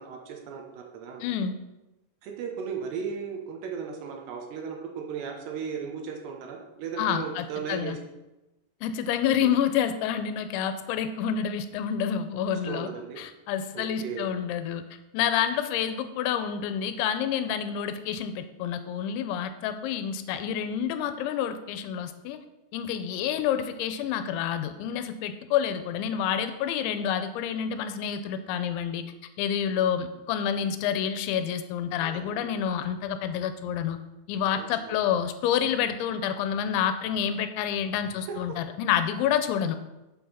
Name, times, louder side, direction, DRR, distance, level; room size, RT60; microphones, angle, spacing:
voice 1, 0.0-1.2 2.2-8.0 12.5-13.2 13.7-14.3 32.0-32.5 34.5-35.0, right 6 dB, 75° right, 2 dB, 2.9 m, -36 dB
voice 2, 1.2-1.5 7.0-8.0 8.8-14.8 15.1-22.4 22.7-29.0 29.4-34.0 34.3-39.8, left 8 dB, 85° left, 10 dB, 2.9 m, -28 dB
7.9 x 6.9 x 5.6 m, 1.0 s
omnidirectional pair, 5.4 m